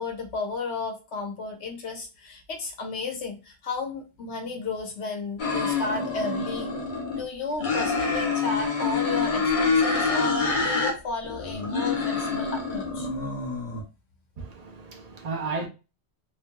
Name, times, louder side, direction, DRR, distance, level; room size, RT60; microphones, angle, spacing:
voice 1, 0.0-6.7 7.1-13.1, left 3 dB, 85° left, 1.0 m, -33 dB
sound 1, 5.4-7.2 7.6-10.9 11.2-13.8, left 4 dB, 50° left, 0.8 m, -26 dB
voice 2, 14.4-15.7, right 4 dB, 50° right, 0.5 m, -33 dB
2.7 x 2.5 x 2.2 m
omnidirectional pair, 1.1 m